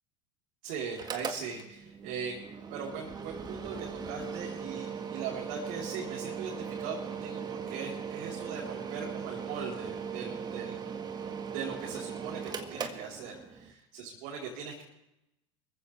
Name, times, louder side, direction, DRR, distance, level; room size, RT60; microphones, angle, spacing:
voice 1, 0.6-2.4 2.7-10.8 11.5-14.8, right 6 dB, 60° right, -5 dB, 3.9 m, -40 dB
Mechanical fan, 0.9-13.7, right 6 dB, 25° right, 1.7 m, -39 dB
24.5 x 15.0 x 3.4 m, 0.88 s
hypercardioid pair, 80°, 16 cm